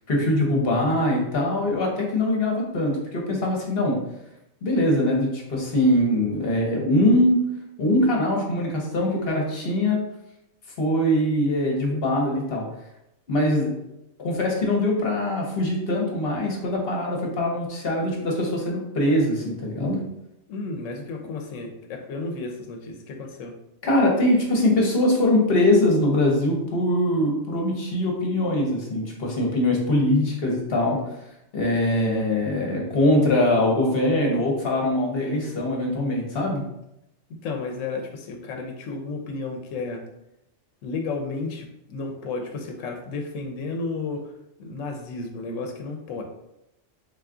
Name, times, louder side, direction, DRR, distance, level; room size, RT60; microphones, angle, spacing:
voice 1, 0.1-4.0 4.6-7.4 7.8-10.0 10.8-12.6 13.3-13.7 14.2-20.0 23.8-31.0 31.5-36.6, left 1 dB, 55° left, -1 dB, 1.0 m, -22 dB
voice 2, 20.5-23.6 37.3-40.0 40.8-44.3 44.6-46.2, left 3 dB, 80° left, 4 dB, 0.9 m, -32 dB
3.7 x 2.3 x 3.6 m, 0.84 s
omnidirectional pair, 1.3 m